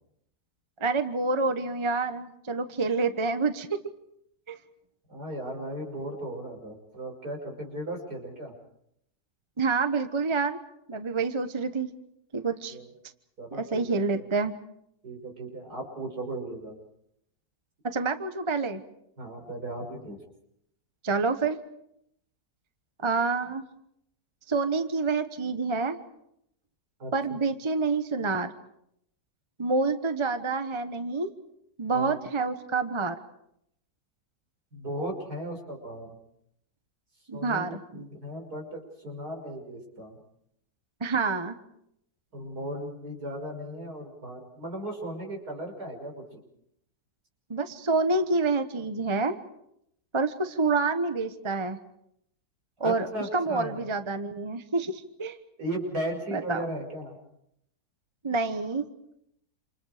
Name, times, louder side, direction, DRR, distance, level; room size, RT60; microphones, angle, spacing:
voice 1, 0.8-3.8 4.5-4.6 9.6-10.6 10.9-11.9 12.3-12.8 13.5-14.5 17.8-18.8 21.0-21.6 23.0-23.6 24.5-26.0 27.1-28.5 29.6-31.3 31.8-33.2 37.3-38.0 41.0-41.6 47.5-49.4 50.1-51.8 52.8-53.1 53.3-55.4 56.3-56.6 58.2-58.8, right 3 dB, 20° right, 8 dB, 1.1 m, -27 dB
voice 2, 5.1-8.5 12.7-12.9 13.4-14.3 15.0-16.8 19.2-20.2 27.0-27.1 31.9-32.2 34.7-36.2 37.3-37.6 37.9-40.2 42.3-46.4 52.8-53.9 55.6-57.2, right 1 dB, 70° right, 2 dB, 6.6 m, -36 dB
28.5 x 28.5 x 5.1 m, 0.76 s
omnidirectional pair, 1.7 m